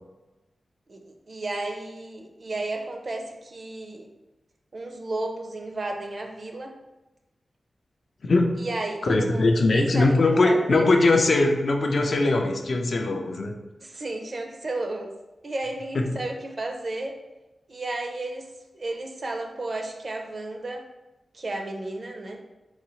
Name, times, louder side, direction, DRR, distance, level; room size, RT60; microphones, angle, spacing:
voice 1, 0.9-4.1 4.7-6.8 8.6-10.9 13.8-15.1 15.4-17.2 17.7-20.9 21.3-22.4, right 2 dB, 45° right, 3 dB, 0.5 m, -33 dB
voice 2, 8.2-8.7 9.0-13.5 15.9-16.1, left 2 dB, 55° left, 3 dB, 0.4 m, -21 dB
3.8 x 2.7 x 3.1 m, 1.0 s
wide cardioid pair, 130°, 0 cm